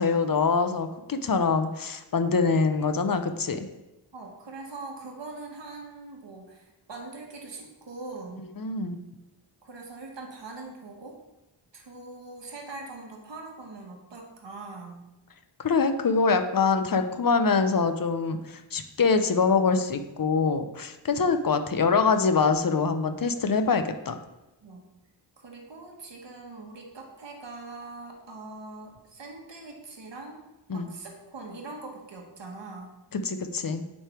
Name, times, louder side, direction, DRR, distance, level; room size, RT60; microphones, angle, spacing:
voice 1, 0.0-3.7 8.6-9.0 15.6-24.2 30.7-30.9 33.1-33.8, left 4 dB, 50° left, 8 dB, 0.7 m, -24 dB
voice 2, 4.1-8.5 9.6-11.2 11.7-15.0 21.1-21.3 24.6-24.9 25.4-30.4 30.7-32.9, right 3 dB, 70° right, 1 dB, 1.4 m, -42 dB
9.5 x 3.4 x 4.5 m, 0.97 s
wide cardioid pair, 65°, 45 cm